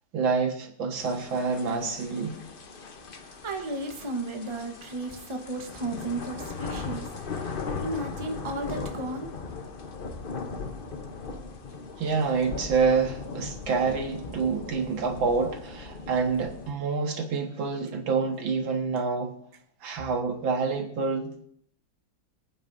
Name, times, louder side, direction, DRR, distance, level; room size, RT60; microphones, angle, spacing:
voice 1, 0.1-2.4 12.0-19.4 19.8-21.3, right 5 dB, 90° right, 3 dB, 2.3 m, -27 dB
sound 1, 1.0-16.7, left 4 dB, 40° left, 0.8 m, -38 dB
voice 2, 3.2-7.1 7.3-7.5 7.8-9.3, right 2 dB, 20° right, 4 dB, 0.9 m, -34 dB
24.5 x 9.2 x 2.7 m, 0.64 s
omnidirectional pair, 2.1 m